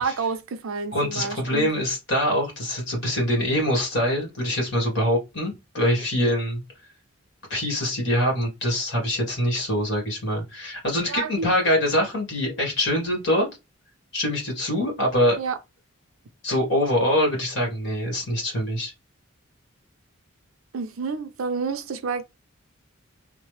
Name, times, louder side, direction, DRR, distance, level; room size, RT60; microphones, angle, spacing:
voice 1, 0.0-1.7 11.1-11.5 15.4-15.6 20.7-22.2, right 5 dB, 75° right, 0.5 m, -29 dB
voice 2, 0.9-6.6 7.5-13.5 14.1-15.4 16.4-18.9, left 1 dB, 55° left, 1.6 m, -24 dB
3.1 x 2.1 x 3.2 m
head